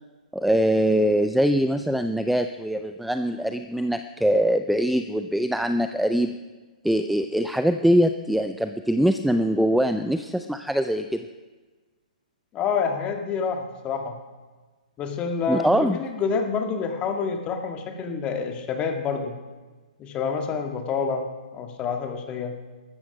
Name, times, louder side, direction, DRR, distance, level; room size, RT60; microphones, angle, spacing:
voice 1, 0.3-6.4 6.8-11.3 15.5-16.0, equal, ahead, 9 dB, 0.4 m, -23 dB
voice 2, 12.5-14.2 15.0-19.4 20.0-21.3 21.5-22.5, left 5 dB, 25° left, 5 dB, 2.0 m, -28 dB
14.5 x 13.0 x 6.0 m, 1.3 s
hypercardioid pair, 130°, 4 cm